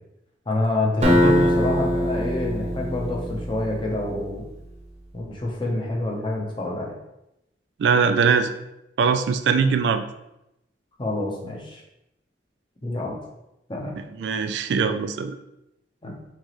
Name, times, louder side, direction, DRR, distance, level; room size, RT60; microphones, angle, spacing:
voice 1, 0.5-4.5 5.1-7.0 11.0-11.8 12.8-13.2 13.7-14.0 16.0-16.2, left 2 dB, 30° left, -1 dB, 0.8 m, -27 dB
Acoustic guitar, 1.0-4.0, equal, 40° right, 0.8 m, -22 dB
voice 2, 7.8-8.6 9.0-10.0 14.2-15.4, right 5 dB, 75° right, 9 dB, 0.3 m, -21 dB
4.4 x 3.0 x 3.0 m, 0.87 s
head